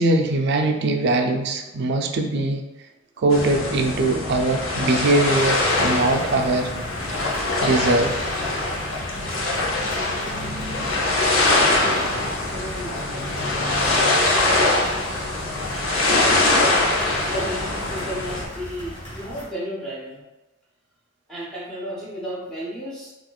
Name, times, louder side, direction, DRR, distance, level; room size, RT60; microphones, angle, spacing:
voice 1, 0.0-2.6 3.2-6.7 7.6-8.1, right 2 dB, 55° right, 4 dB, 0.4 m, -21 dB
sound 1, 3.3-18.4, left 2 dB, 85° left, 0.7 m, -23 dB
sound 2, 5.3-19.5, equal, 30° left, 1.3 m, -40 dB
voice 2, 8.8-9.7 11.8-12.2 12.5-13.2 15.9-16.6 17.2-20.2 21.3-23.1, equal, 5° left, -8 dB, 0.7 m, -34 dB
4.3 x 2.4 x 2.3 m, 1.1 s
head